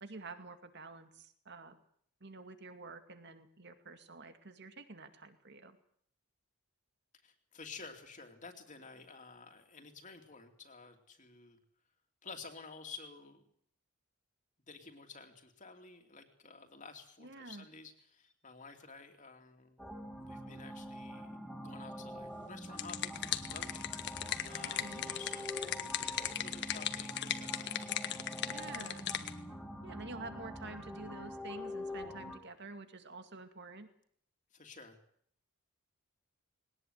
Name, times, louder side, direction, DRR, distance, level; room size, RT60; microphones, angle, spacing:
voice 1, 0.0-1.8 2.2-5.8 17.2-17.7 24.6-25.1 28.4-29.1 29.8-33.9, right 3 dB, 50° right, 8 dB, 2.3 m, -49 dB
voice 2, 7.2-11.6 12.2-13.5 14.7-19.8 20.2-21.4 21.6-27.9 34.5-35.0, left 4 dB, 35° left, 4 dB, 2.7 m, -52 dB
sound 1, 19.8-32.4, equal, ahead, 3.3 m, -45 dB
sound 2, 22.5-29.3, left 10 dB, 50° left, 1.6 m, -38 dB
20.5 x 19.0 x 9.4 m, 0.64 s
head